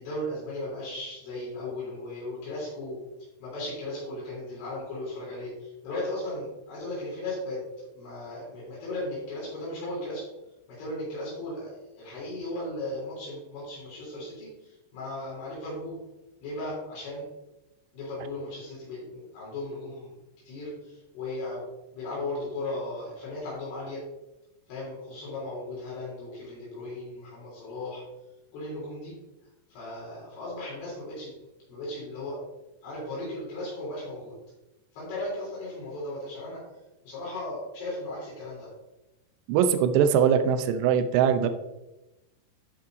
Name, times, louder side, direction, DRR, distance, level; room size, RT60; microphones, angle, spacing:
voice 1, 0.0-3.0 3.4-7.6 7.9-10.2 10.7-16.0 16.4-17.3 17.9-20.1 20.5-21.7 21.9-24.0 24.7-28.0 28.5-29.1 29.7-31.3 31.7-32.4 32.8-34.3 34.9-36.6 37.0-38.7, left 1 dB, 70° left, -7 dB, 5.6 m, -36 dB
voice 2, 39.5-41.5, right 8 dB, 85° right, 9 dB, 2.5 m, -22 dB
13.5 x 5.6 x 2.6 m, 0.99 s
omnidirectional pair, 5.6 m